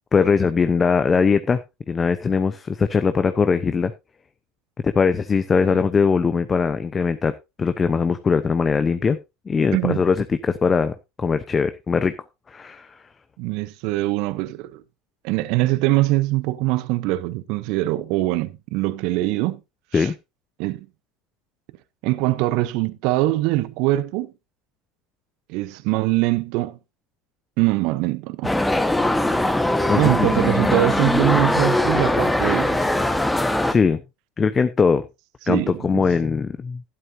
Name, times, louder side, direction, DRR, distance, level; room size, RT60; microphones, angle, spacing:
voice 1, 0.1-1.6 1.9-3.9 4.8-9.2 9.5-12.1 12.5-13.0 19.9-20.1 29.9-30.3 33.7-34.0 34.4-35.1 35.5-36.8, left 5 dB, 25° left, 0.9 m, -21 dB
voice 2, 9.7-10.0 13.4-14.8 15.2-19.6 19.9-20.1 20.6-20.9 22.0-24.3 25.5-26.8 27.6-28.5 29.9-32.9 35.4-36.0, right 18 dB, 60° right, 0.9 m, -23 dB
sound 1, 28.4-33.7, left 1 dB, 5° left, 1.5 m, -21 dB
12.5 x 11.5 x 2.8 m
hypercardioid pair, 80°, 0 cm